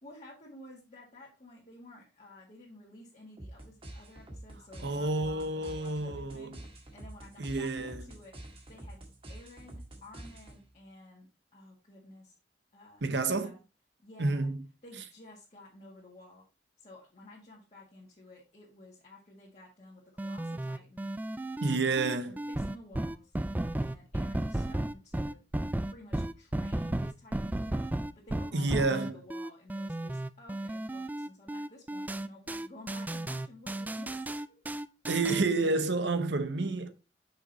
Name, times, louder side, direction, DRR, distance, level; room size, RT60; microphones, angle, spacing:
voice 1, 0.0-6.6 6.9-12.4 12.7-13.6 14.0-14.5 14.8-16.5 16.8-21.1 21.6-23.3 23.8-25.4 25.9-34.7, left 1 dB, 40° left, 2.0 m, -53 dB
sound 1, 3.4-10.8, right 1 dB, 35° right, 1.7 m, -48 dB
voice 2, 4.8-6.5 7.4-8.1 13.0-13.5 14.2-14.7 21.6-22.3 28.5-29.2 35.1-36.9, right 3 dB, 75° right, 0.9 m, -29 dB
sound 2, 20.2-35.4, right 1 dB, 10° right, 0.3 m, -34 dB
6.0 x 5.4 x 4.0 m
head